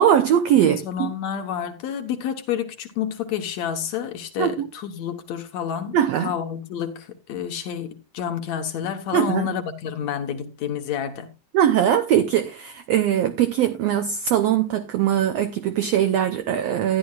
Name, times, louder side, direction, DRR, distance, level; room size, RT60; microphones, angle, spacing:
voice 1, 0.0-1.1 4.4-4.7 5.9-6.3 9.1-9.6 11.5-17.0, right 10 dB, 80° right, 1.4 m, -21 dB
voice 2, 0.5-11.3, left 9 dB, 65° left, 2.1 m, -29 dB
13.5 x 11.0 x 2.4 m
omnidirectional pair, 3.8 m